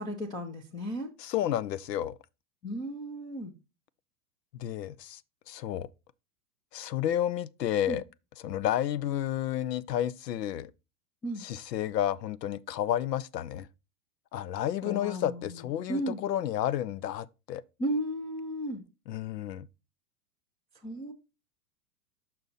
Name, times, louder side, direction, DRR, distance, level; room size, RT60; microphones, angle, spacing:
voice 1, 0.0-1.1 2.6-3.5 7.9-8.0 11.2-11.4 14.8-15.6 15.9-16.2 17.8-18.8 20.8-21.1, right 1 dB, 10° left, 0.4 m, -34 dB
voice 2, 1.2-2.2 4.5-5.2 5.5-5.9 6.7-8.0 8.4-10.7 11.4-13.7 14.3-17.6 19.1-19.7, left 11 dB, 80° left, 0.7 m, -31 dB
6.7 x 5.8 x 3.9 m
hypercardioid pair, 125°, 49 cm